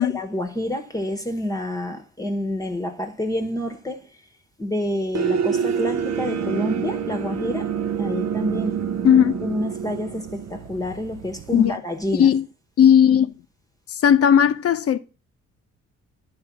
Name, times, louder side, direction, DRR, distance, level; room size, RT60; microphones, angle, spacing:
voice 1, 0.1-4.1 4.6-7.7 8.0-8.7 9.4-12.3, left 1 dB, 10° left, 1.0 m, -28 dB
sound 1, 5.1-11.7, right 7 dB, 60° right, 0.7 m, -27 dB
voice 2, 9.0-9.4 11.5-11.8 12.2-12.5 12.8-13.3 13.9-15.0, left 9 dB, 50° left, 0.7 m, -16 dB
9.7 x 3.3 x 6.0 m
cardioid pair, 90°, 30 cm